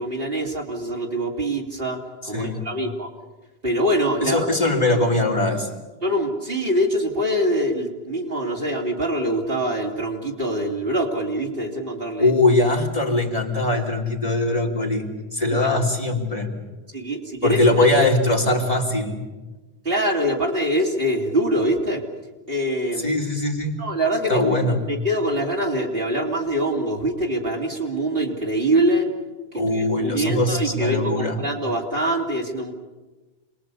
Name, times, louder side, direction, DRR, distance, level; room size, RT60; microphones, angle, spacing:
voice 1, 0.0-2.0 2.2-3.1 3.6-4.7 6.0-12.3 15.5-15.8 16.9-17.6 19.8-22.0 22.5-23.2 23.8-29.1 29.7-32.7, right 1 dB, 60° right, 1 dB, 3.1 m, -24 dB
voice 2, 2.3-2.6 4.2-5.7 12.2-16.6 17.4-19.2 23.0-23.8 24.3-24.8 29.5-31.4, left 2 dB, 35° left, 0 dB, 3.0 m, -21 dB
27.5 x 21.0 x 8.4 m, 1.2 s
omnidirectional pair, 1.1 m